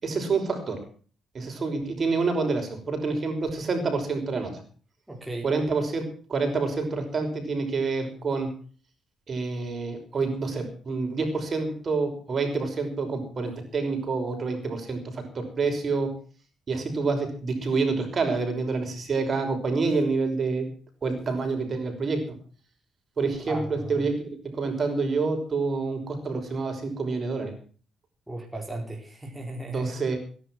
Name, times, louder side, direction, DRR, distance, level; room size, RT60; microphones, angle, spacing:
voice 1, 0.0-0.8 1.3-4.6 5.4-8.5 9.3-16.2 16.7-20.7 21.0-22.3 23.2-27.5 29.7-30.2, right 4 dB, 40° right, 5 dB, 5.8 m, -27 dB
voice 2, 5.1-5.5 23.4-24.1 28.3-30.0, right 2 dB, 5° right, 0 dB, 4.6 m, -36 dB
18.0 x 11.0 x 6.2 m, 0.42 s
cardioid pair, 90°, 0 cm